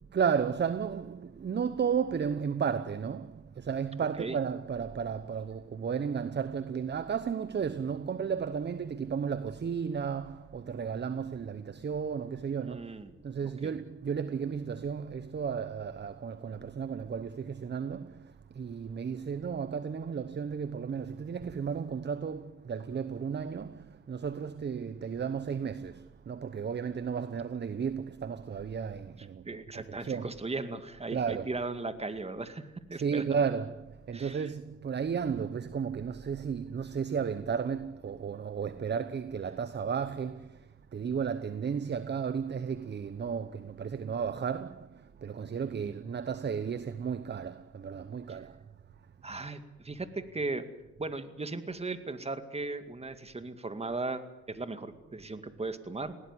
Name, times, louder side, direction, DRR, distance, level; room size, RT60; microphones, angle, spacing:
voice 1, 0.1-12.9 13.2-29.5 29.7-30.3 31.1-31.5 32.9-48.6, right 6 dB, 35° right, 1.0 m, -33 dB
voice 2, 12.6-13.1 13.6-13.7 29.5-33.2 34.1-34.5 45.8-46.0 49.2-50.7 51.0-56.2, right 3 dB, 20° right, 2.1 m, -37 dB
20.0 x 17.5 x 9.9 m
cardioid pair, 90°, 30 cm